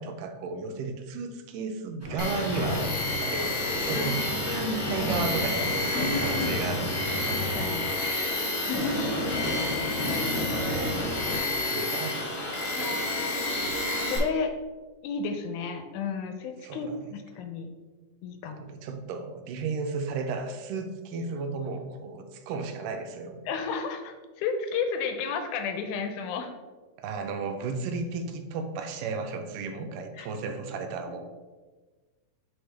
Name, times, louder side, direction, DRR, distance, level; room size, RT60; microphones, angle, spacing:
voice 1, 0.0-4.2 4.5-7.1 10.3-13.2 16.6-17.1 18.5-23.4 27.0-31.2, right 4 dB, 85° right, 6 dB, 2.3 m, -34 dB
sound 1, 2.0-8.1 8.5-11.4, left 1 dB, 15° right, 0.6 m, -33 dB
Tools, 2.2-14.2, left 2 dB, 45° left, 1.4 m, -30 dB
voice 2, 4.5-5.1 5.9-6.6 7.3-7.9 8.7-9.1 12.8-14.6 15.0-17.7 18.2-18.6 23.5-26.5 30.2-30.3, left 5 dB, 80° left, 7 dB, 2.0 m, -33 dB
7.9 x 4.0 x 3.3 m, 1.3 s
omnidirectional pair, 3.7 m